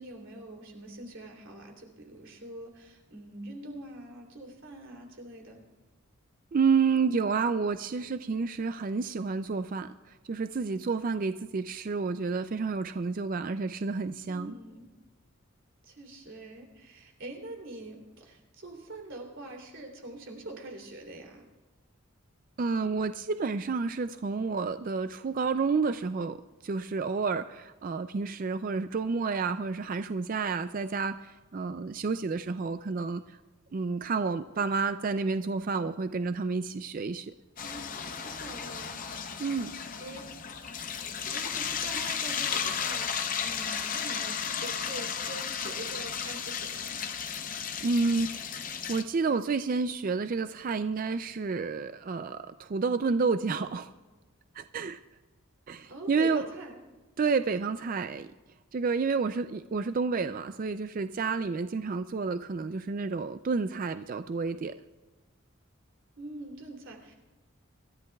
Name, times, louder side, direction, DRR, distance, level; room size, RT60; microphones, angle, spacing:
voice 1, 0.0-5.6 14.3-14.9 15.8-21.4 37.6-39.0 40.0-40.2 41.3-47.0 55.9-56.7 66.2-67.1, right 1 dB, 60° right, 1 dB, 3.0 m, -44 dB
voice 2, 6.5-9.9 10.3-14.5 22.6-26.4 26.6-33.2 33.7-37.3 39.4-39.7 47.8-48.6 48.9-53.9 54.5-55.0 55.7-56.5 57.2-58.3 58.7-64.7, right 4 dB, 40° right, 11 dB, 0.3 m, -30 dB
sound 1, 37.6-49.0, left 7 dB, 40° left, 0.7 m, -34 dB
26.0 x 13.5 x 2.3 m, 1.2 s
head